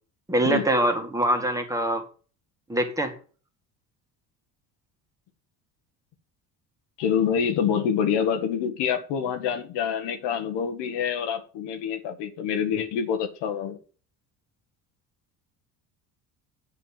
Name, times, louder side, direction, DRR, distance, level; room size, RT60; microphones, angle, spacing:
voice 1, 0.3-2.0 2.7-3.1, right 1 dB, 10° right, 5 dB, 2.1 m, -24 dB
voice 2, 7.0-13.8, left 7 dB, 80° left, 6 dB, 1.5 m, -26 dB
8.0 x 6.8 x 7.3 m, 0.40 s
cardioid pair, 120°, 42 cm